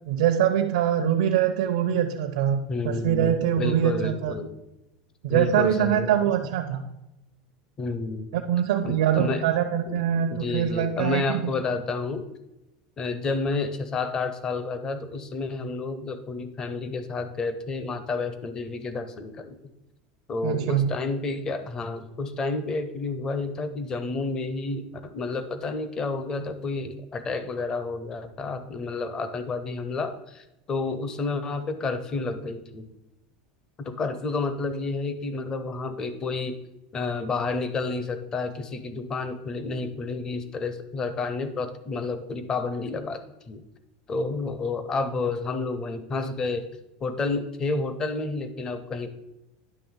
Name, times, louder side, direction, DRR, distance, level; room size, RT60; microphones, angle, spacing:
voice 1, 0.1-4.3 5.2-6.8 8.3-11.4 20.4-20.9, right 9 dB, 80° right, 3 dB, 0.8 m, -23 dB
voice 2, 2.7-4.5 5.3-6.3 7.8-8.3 8.8-9.5 9.9-12.2 13.0-19.6 20.3-32.9 33.8-36.6 36.9-43.2 43.5-43.6 44.1-46.6 47.0-49.1, left 3 dB, 20° left, 10 dB, 0.7 m, -30 dB
10.5 x 3.5 x 7.2 m, 0.93 s
supercardioid pair, 170°, 4 cm